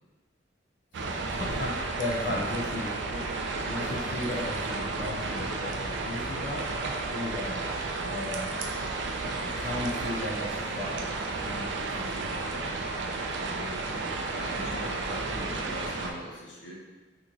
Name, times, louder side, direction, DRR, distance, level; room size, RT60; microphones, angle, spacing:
sound 1, 0.9-16.1, right 3 dB, 70° right, 0.4 m, -32 dB
voice 1, 1.1-7.6 8.1-8.6 9.4-11.0 11.3-12.7 13.4-14.7, left 1 dB, 45° left, -5 dB, 0.4 m, -36 dB
voice 2, 14.3-16.7, equal, 80° left, -3 dB, 0.8 m, -41 dB
2.9 x 2.5 x 3.7 m, 1.3 s
head